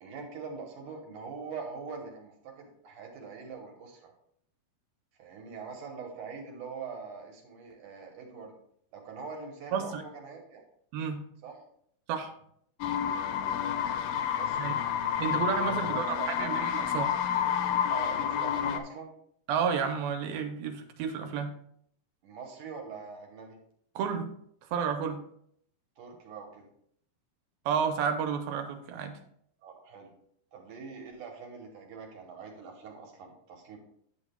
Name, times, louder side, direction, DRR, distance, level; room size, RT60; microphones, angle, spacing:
voice 1, 0.0-4.1 5.2-8.5 8.9-10.6 11.4-11.7 14.4-14.8 15.6-16.6 17.9-19.1 22.2-23.6 26.0-26.7 29.6-30.1 30.5-33.8, right 5 dB, 70° right, 1 dB, 2.3 m, -43 dB
voice 2, 9.7-10.0 10.9-11.2 12.1-12.3 14.6-14.8 15.2-17.1 19.5-21.5 24.0-24.3 24.7-25.2 27.7-29.1, right 6 dB, 85° right, 6 dB, 2.5 m, -31 dB
sound 1, 12.8-18.8, left 9 dB, 80° left, 2.2 m, -29 dB
10.5 x 7.3 x 2.3 m, 0.68 s
omnidirectional pair, 4.2 m